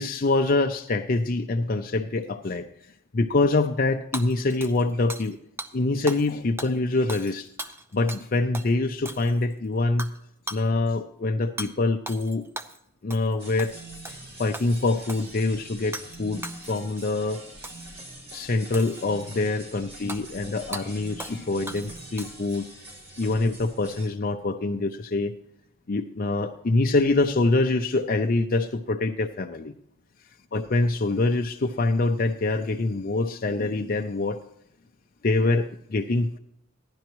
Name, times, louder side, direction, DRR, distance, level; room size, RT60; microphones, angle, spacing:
voice 1, 0.0-2.7 3.1-5.4 5.7-7.5 7.9-10.1 10.5-12.4 13.0-13.7 14.4-17.4 18.3-22.7 23.2-25.3 25.9-29.8 30.5-34.4 35.2-36.4, left 2 dB, 45° left, 5 dB, 0.6 m, -25 dB
Hammer / Shatter, 4.1-5.3 5.6-5.7 6.1-6.3 6.6-8.3 8.5-8.7 9.1-9.5 10.0-10.2 10.5-10.7 11.6-11.7 12.1-12.8 13.1-13.3 13.6-14.2 14.5-15.3 15.9-16.2 16.4-17.0 17.6-17.9 18.7-19.3 20.1-20.2 20.7-20.9 21.2-21.4 21.7-22.5, right 2 dB, 10° right, 0.7 m, -38 dB
sound 1, 13.4-24.1, right 1 dB, 55° right, 5.3 m, -44 dB
15.5 x 11.5 x 3.0 m, 0.75 s
head